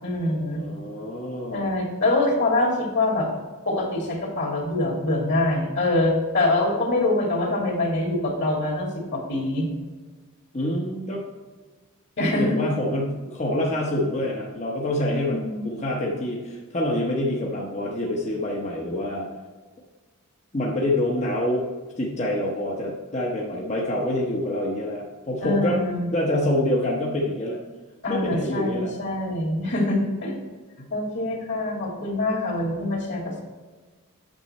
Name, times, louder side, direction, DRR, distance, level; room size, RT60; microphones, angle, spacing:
voice 1, 0.0-0.6 1.5-3.3 3.7-9.7 12.2-12.6 14.9-15.6 25.4-26.1 28.0-30.3 30.9-33.4, left 2 dB, 50° left, 0 dB, 2.3 m, -24 dB
voice 2, 0.5-1.7 10.5-11.2 12.4-19.3 20.5-21.6 22.0-25.8 26.1-27.6 28.1-28.9, left 1 dB, 30° left, -2 dB, 1.0 m, -26 dB
8.9 x 6.8 x 4.3 m, 1.3 s
head